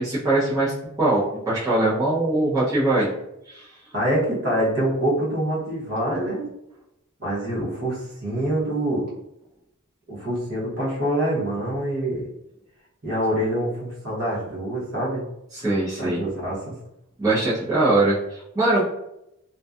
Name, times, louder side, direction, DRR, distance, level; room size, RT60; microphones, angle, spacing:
voice 1, 0.0-3.1 3.5-3.7 15.5-16.2 17.2-18.8, right 2 dB, 15° right, -11 dB, 0.6 m, -22 dB
voice 2, 3.9-6.5 7.2-9.0 10.1-12.2 13.0-15.3 16.0-16.7, right 1 dB, 50° right, -6 dB, 0.9 m, -25 dB
2.6 x 2.2 x 2.3 m, 0.82 s
head